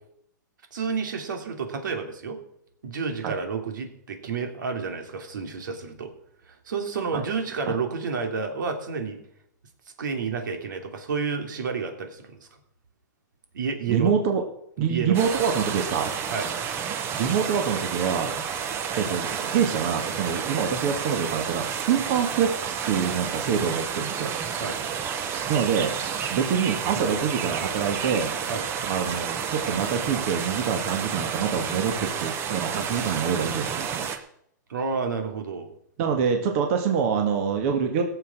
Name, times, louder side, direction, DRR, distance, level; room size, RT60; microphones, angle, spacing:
voice 1, 0.7-2.4 2.8-6.1 6.5-9.2 10.0-12.5 13.5-14.1 14.8-15.2 16.3-16.5 24.6-24.8 28.5-28.7 34.7-35.7, right 5 dB, 80° right, 4 dB, 3.0 m, -30 dB
voice 2, 13.9-14.4 14.8-16.1 17.2-18.3 19.0-24.3 25.5-25.9 26.3-28.3 28.8-34.1 36.0-38.0, right 7 dB, 45° right, 4 dB, 1.9 m, -26 dB
sound 1, 15.1-34.2, right 7 dB, 25° right, 1.0 m, -30 dB
17.0 x 7.2 x 6.2 m, 0.72 s
hypercardioid pair, 145°, 10 cm